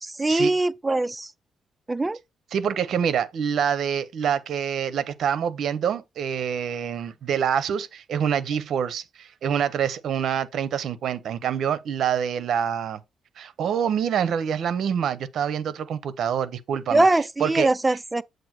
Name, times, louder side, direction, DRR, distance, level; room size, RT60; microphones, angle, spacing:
voice 1, 0.0-1.3 1.9-2.2 16.9-18.2, right 2 dB, 15° right, 0.4 m, -22 dB
voice 2, 2.5-13.0 13.4-17.1 17.4-17.7, right 8 dB, 65° right, 0.7 m, -26 dB
7.6 x 2.6 x 5.8 m
cardioid pair, 130°, 0 cm